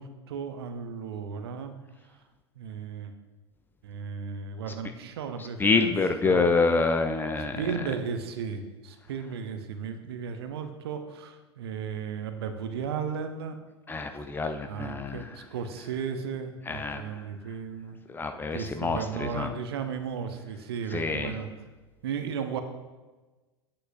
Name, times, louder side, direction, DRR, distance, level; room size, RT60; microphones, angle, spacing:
voice 1, 0.0-1.7 2.6-3.1 3.8-5.9 6.2-6.5 7.6-13.6 14.7-18.0 18.5-21.5 22.0-22.6, right 6 dB, 60° right, 8 dB, 0.7 m, -35 dB
voice 2, 5.6-7.6 13.9-15.3 16.7-17.2 18.1-19.5 20.9-21.3, left 4 dB, 15° left, 7 dB, 0.4 m, -27 dB
8.5 x 7.7 x 2.6 m, 1.2 s
figure-of-eight pair, 85°, 15 cm